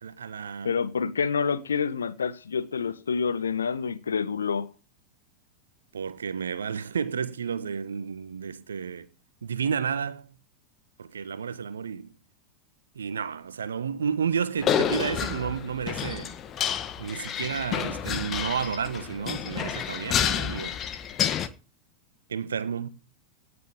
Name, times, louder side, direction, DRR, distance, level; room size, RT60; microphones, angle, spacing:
voice 1, 0.0-0.8 5.9-9.1 9.4-10.3 11.0-12.1 12.9-16.3 17.0-20.7 22.3-22.9, right 6 dB, 70° right, 1.3 m, -31 dB
voice 2, 0.6-4.7, left 6 dB, 70° left, 1.2 m, -27 dB
sound 1, 14.6-21.5, left 9 dB, 30° left, 1.4 m, -29 dB
18.0 x 6.9 x 5.1 m
figure-of-eight pair, 90°, 0 cm